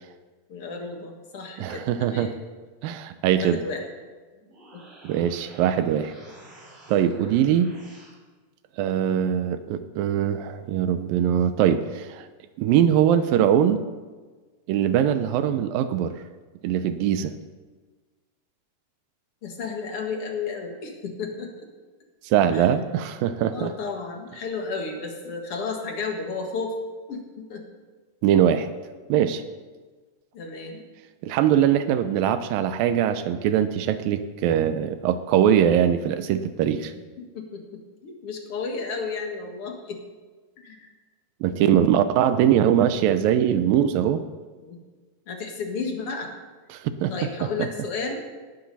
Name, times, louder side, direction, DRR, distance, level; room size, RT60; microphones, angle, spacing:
voice 1, 0.5-2.4 3.4-3.9 4.7-4.8 19.4-21.5 22.5-22.7 23.5-27.7 30.3-30.8 31.4-31.5 36.8-36.9 37.2-40.0 40.6-40.8 44.6-44.8 45.3-46.3 47.1-48.2, left 4 dB, 50° left, 2 dB, 2.2 m, -33 dB
voice 2, 1.6-2.3 2.8-3.6 5.0-6.1 6.9-7.7 8.8-12.3 12.6-13.8 14.7-16.2 16.6-17.3 22.2-23.7 28.2-28.7 29.1-29.4 31.2-36.9 41.4-44.2 46.7-47.1, right 9 dB, 85° right, 10 dB, 2.5 m, -22 dB
sound 1, 4.3-8.1, right 1 dB, 60° right, 7.1 m, -49 dB
18.5 x 11.5 x 4.1 m, 1.3 s
omnidirectional pair, 4.0 m